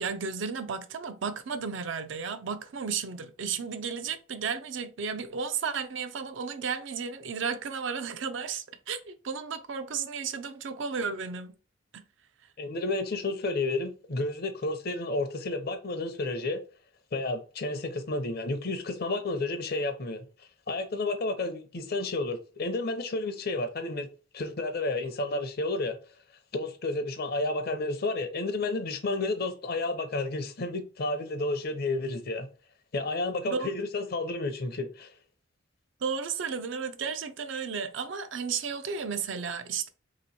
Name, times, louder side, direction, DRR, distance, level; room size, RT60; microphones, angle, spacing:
voice 1, 0.0-11.5 11.9-12.0 33.5-33.7 36.0-39.9, right 6 dB, 70° right, 0.5 m, -33 dB
voice 2, 12.6-16.6 17.1-24.1 24.3-26.0 26.5-32.5 32.9-35.1, left 2 dB, 50° left, 0.6 m, -31 dB
2.9 x 2.9 x 4.1 m
head